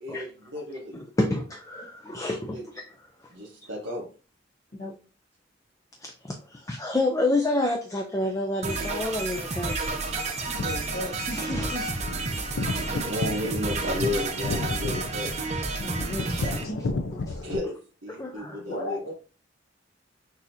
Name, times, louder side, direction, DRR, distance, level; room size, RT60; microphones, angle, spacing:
voice 1, 0.0-1.0 2.5-2.7 3.3-4.1 12.5-15.3 17.4-19.1, left 1 dB, 70° right, -4 dB, 1.1 m, -33 dB
voice 2, 0.9-2.6 6.0-9.8 11.3-11.9 17.1-17.4 18.2-18.6, left 2 dB, 15° left, 3 dB, 0.5 m, -29 dB
sound 1, 8.6-16.6, right 3 dB, 35° right, 0.7 m, -31 dB
sound 2, 10.3-17.6, left 3 dB, 80° left, 0.5 m, -33 dB
voice 3, 10.5-11.1 15.7-16.8 18.7-19.1, left 1 dB, 55° left, -1 dB, 1.0 m, -35 dB
6.1 x 2.8 x 2.7 m, 0.36 s
head